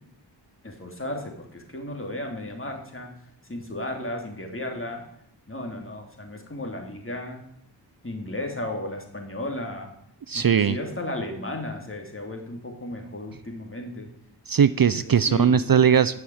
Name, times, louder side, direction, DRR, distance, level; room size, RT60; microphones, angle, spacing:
voice 1, 0.6-3.1 3.5-5.0 5.5-7.4 8.0-9.9 10.3-14.1 14.9-15.6, left 1 dB, 30° left, 2 dB, 2.8 m, -34 dB
voice 2, 10.3-10.8 14.5-16.2, right 7 dB, 50° right, 14 dB, 0.5 m, -19 dB
12.0 x 6.4 x 8.6 m, 0.74 s
wide cardioid pair, 55°, 44 cm